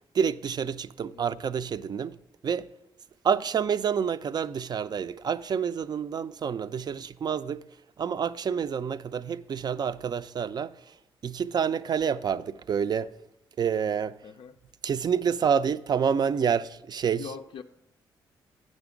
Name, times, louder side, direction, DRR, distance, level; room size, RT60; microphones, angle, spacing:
voice 1, 0.1-2.2 2.4-2.7 3.2-7.6 8.0-10.7 11.2-13.2 13.6-14.2 14.8-17.3, right 7 dB, 45° right, 0.4 m, -28 dB
voice 2, 14.2-14.6 17.1-17.6, left 7 dB, 65° left, 0.4 m, -42 dB
9.0 x 6.1 x 5.1 m
supercardioid pair, 60°, 10 cm